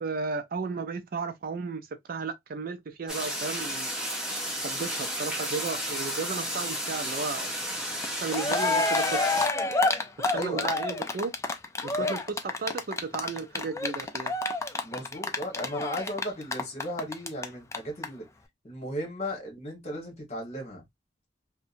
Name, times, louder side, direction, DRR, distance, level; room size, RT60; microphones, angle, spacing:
voice 1, 0.0-3.9 4.6-7.5 8.2-9.5 10.3-11.3 11.8-14.4, right 4 dB, 55° right, 0.4 m, -34 dB
sound 1, 3.1-9.5, equal, 5° right, 0.8 m, -33 dB
Cheering, 8.0-8.1 8.3-17.4 17.7-17.8 18.0-18.1, left 3 dB, 15° left, 0.3 m, -28 dB
voice 2, 10.3-10.7 12.0-12.1 14.8-18.2 18.6-20.8, equal, 40° left, 1.2 m, -35 dB
2.7 x 2.1 x 2.5 m
head